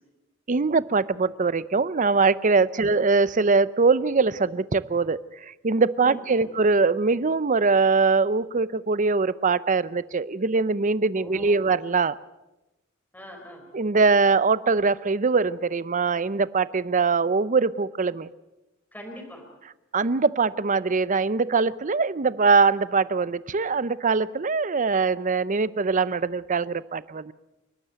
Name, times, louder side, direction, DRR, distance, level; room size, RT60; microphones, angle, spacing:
voice 1, 0.5-12.2 13.7-18.3 19.9-27.3, right 4 dB, 40° right, 17 dB, 0.6 m, -22 dB
voice 2, 6.0-6.5 11.2-11.7 13.1-13.6 18.9-19.4, equal, 10° left, 1 dB, 4.4 m, -42 dB
29.5 x 12.0 x 8.0 m, 1.0 s
head